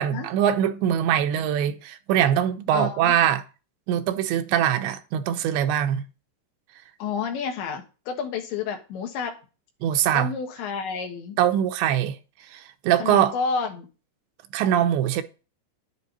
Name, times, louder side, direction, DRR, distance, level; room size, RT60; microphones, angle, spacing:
voice 1, 0.0-3.4 3.9-6.0 9.8-10.3 11.4-12.2 12.5-13.3 14.5-15.2, right 10 dB, 80° right, 3.1 m, -22 dB
voice 2, 2.7-3.1 7.0-9.4 10.1-11.4 13.0-13.9, left 6 dB, 80° left, 4.1 m, -30 dB
11.0 x 8.9 x 4.1 m
omnidirectional pair, 5.2 m